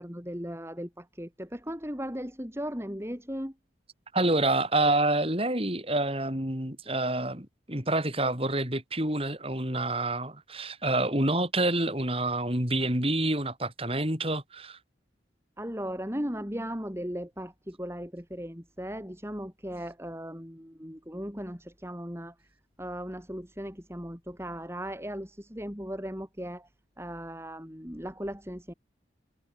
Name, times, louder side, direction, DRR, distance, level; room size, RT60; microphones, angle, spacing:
voice 1, 0.0-3.5 15.6-22.3 22.8-26.7 27.0-28.7, equal, 15° right, 6.0 m, -37 dB
voice 2, 4.1-14.8, right 2 dB, 30° right, 6.0 m, -27 dB
head